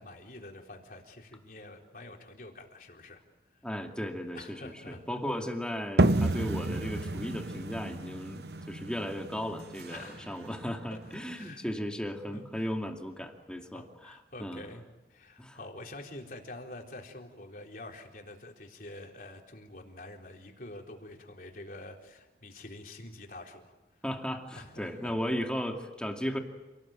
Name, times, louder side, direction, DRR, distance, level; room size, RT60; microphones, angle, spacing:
voice 1, 0.0-3.2 3.5-3.7 4.3-5.0 9.9-10.5 10.9-11.0 11.3-11.7 12.3-12.7 13.7-14.8 15.1-23.7 24.5-25.1, left 2 dB, 50° left, 1 dB, 4.0 m, -47 dB
voice 2, 3.6-14.6 15.4-15.6 24.0-26.4, equal, 5° left, 3 dB, 2.5 m, -36 dB
sound 1, 6.0-11.4, right 2 dB, 65° right, 0.9 m, -31 dB
28.5 x 19.0 x 9.1 m, 1.1 s
head